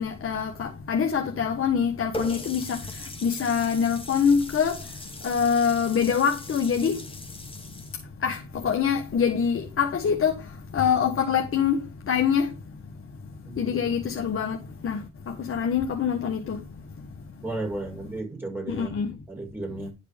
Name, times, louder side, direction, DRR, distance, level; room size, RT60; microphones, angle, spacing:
voice 1, 0.0-17.4 18.7-19.2, left 7 dB, 45° left, 1.4 m, -26 dB
Water tap faucet, 2.1-7.9, left 1 dB, 15° left, 2.2 m, -39 dB
voice 2, 17.4-18.9 19.3-19.9, right 2 dB, 5° right, 6.1 m, -33 dB
11.0 x 4.9 x 5.1 m
cardioid pair, 90°, 30 cm